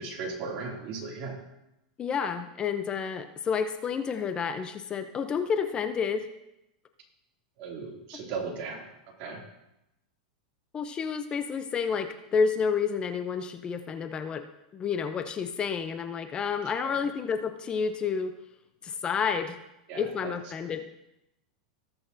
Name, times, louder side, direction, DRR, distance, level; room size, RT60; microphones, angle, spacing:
voice 1, 0.0-1.3 7.6-8.9 9.2-9.4 16.8-17.0 19.9-20.3, right 4 dB, 45° right, -1 dB, 2.7 m, -37 dB
voice 2, 2.0-6.3 10.7-14.4 14.7-18.3 18.8-19.6 19.9-20.8, left 6 dB, 25° left, 8 dB, 0.6 m, -30 dB
19.0 x 6.5 x 2.7 m, 0.90 s
supercardioid pair, 130°, 4 cm